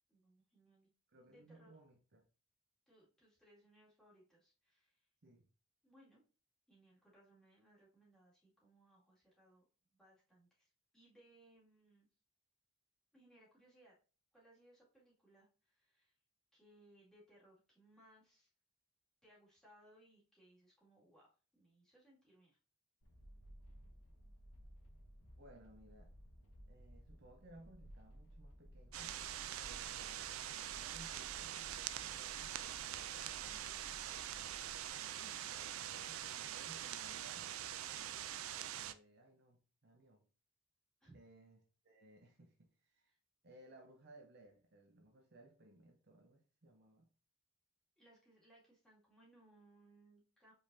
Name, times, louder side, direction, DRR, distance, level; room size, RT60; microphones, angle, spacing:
voice 1, 0.1-0.9 1.2-1.7 2.9-5.1 5.8-6.2 6.7-9.7 9.9-12.1 13.1-14.0 14.3-16.1 16.5-18.5 19.2-22.6 41.0-41.2 43.1-43.2 48.0-50.5, right 1 dB, 5° left, 2.3 m, -67 dB
voice 2, 1.1-2.2 5.2-5.5 25.4-26.1 26.7-29.2 29.6-33.7 35.2-37.5 38.8-40.3 41.1-41.6 41.8-43.1 43.4-47.1, right 1 dB, 50° right, 0.8 m, -62 dB
sound 1, 23.0-34.9, equal, 75° left, 1.0 m, -58 dB
sound 2, 28.9-38.9, right 11 dB, 70° right, 0.4 m, -44 dB
5.2 x 3.8 x 2.7 m
head